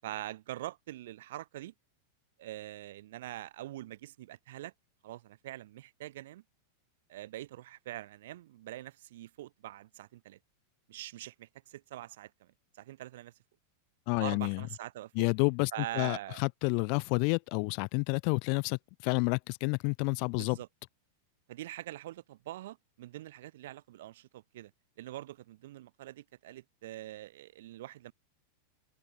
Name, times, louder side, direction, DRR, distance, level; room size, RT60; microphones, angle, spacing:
voice 1, 0.0-1.7 2.4-4.7 5.0-6.4 7.1-10.4 10.9-12.5 12.7-13.3 14.2-15.3 15.7-16.4 20.4-20.7 21.5-24.7 25.0-28.1, right 15 dB, 55° right, 6.2 m, -44 dB
voice 2, 14.1-14.6 15.1-20.6, left 40 dB or more, 45° left, 0.6 m, -30 dB
figure-of-eight pair, 90°, 0 cm